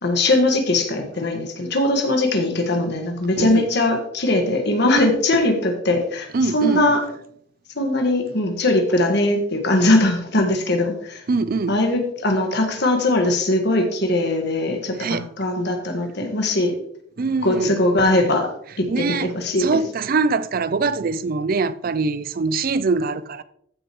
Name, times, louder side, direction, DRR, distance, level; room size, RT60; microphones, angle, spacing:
voice 1, 0.0-7.0 7.7-11.2 11.7-16.7 17.4-18.5 18.8-19.8, left 1 dB, 60° left, 1.6 m, -20 dB
voice 2, 6.3-6.8 11.3-11.7 15.0-15.3 17.2-17.7 18.9-19.3 19.6-23.4, right 4 dB, 45° right, 0.4 m, -23 dB
14.5 x 6.4 x 3.1 m
head